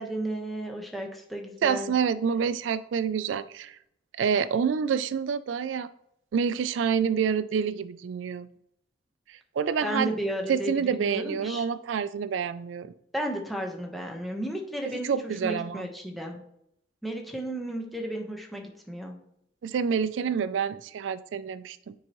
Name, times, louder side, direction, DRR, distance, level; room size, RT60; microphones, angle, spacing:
voice 1, 0.0-1.9 9.8-11.6 13.1-16.4 17.0-19.1, right 1 dB, ahead, 1 dB, 1.1 m, -33 dB
voice 2, 1.6-3.8 4.2-5.9 6.3-8.5 9.6-10.1 10.5-12.9 14.9-15.8 19.6-21.9, right 6 dB, 80° right, 15 dB, 0.3 m, -27 dB
9.4 x 4.6 x 3.0 m, 0.75 s
head